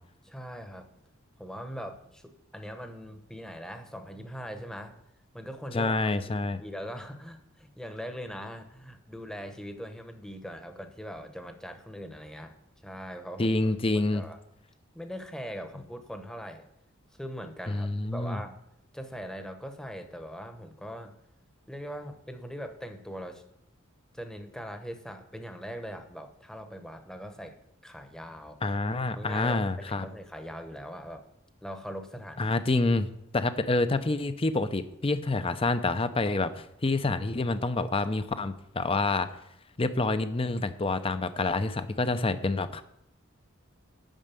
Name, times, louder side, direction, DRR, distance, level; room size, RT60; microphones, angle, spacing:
voice 1, 0.2-0.9 1.4-4.9 5.3-12.5 12.8-14.4 14.9-16.6 17.2-18.5 18.9-21.1 21.7-23.4 24.1-27.5 27.8-28.6 29.2-31.2 31.6-32.5, equal, 5° left, 6 dB, 1.0 m, -41 dB
voice 2, 5.7-6.6 13.4-14.2 17.7-18.4 28.6-30.1 32.4-33.1 33.3-39.3 39.8-42.8, left 2 dB, 25° left, 11 dB, 0.6 m, -27 dB
9.0 x 6.4 x 8.3 m, 0.78 s
head